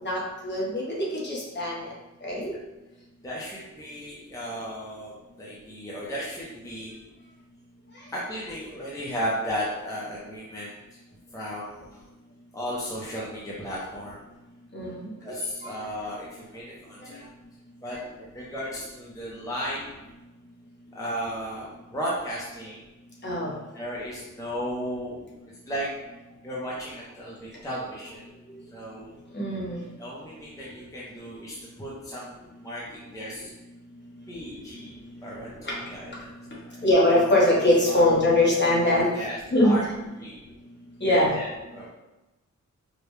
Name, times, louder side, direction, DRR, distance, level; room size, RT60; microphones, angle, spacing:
voice 1, 0.0-1.9 2.2-2.5 14.7-15.0 23.2-23.5 29.3-29.8 36.8-39.1 39.5-39.7 41.0-41.3, left 1 dB, 35° left, -5 dB, 1.1 m, -22 dB
voice 2, 3.2-7.0 8.1-10.7 11.3-12.1 12.5-14.2 15.2-17.3 17.8-19.9 20.9-22.8 23.7-25.2 25.7-25.9 26.4-28.2 28.7-29.2 30.0-32.3 32.6-33.5 34.3-34.9 35.2-36.3 36.6-36.8 37.9-38.1 39.1-39.8 40.2-40.4 41.0-41.9, equal, 10° left, -6 dB, 0.6 m, -35 dB
4.9 x 2.2 x 3.1 m, 1.1 s
wide cardioid pair, 135°, 31 cm